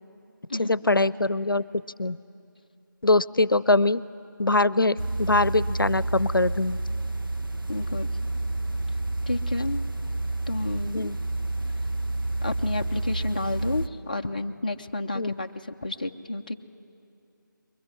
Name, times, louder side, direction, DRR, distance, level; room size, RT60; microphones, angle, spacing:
voice 1, 0.5-1.7 2.0-2.2 3.0-4.0 4.4-6.8 10.9-11.2 15.1-15.3, left 2 dB, 85° left, 20 dB, 0.6 m, -23 dB
sound 1, 5.0-13.9, right 2 dB, 85° right, 1.3 m, -29 dB
voice 2, 7.7-8.1 9.3-9.8 10.5-11.1 12.4-16.5, left 2 dB, 25° left, 4 dB, 0.6 m, -30 dB
22.0 x 21.5 x 9.5 m, 2.6 s
figure-of-eight pair, 165°, 11 cm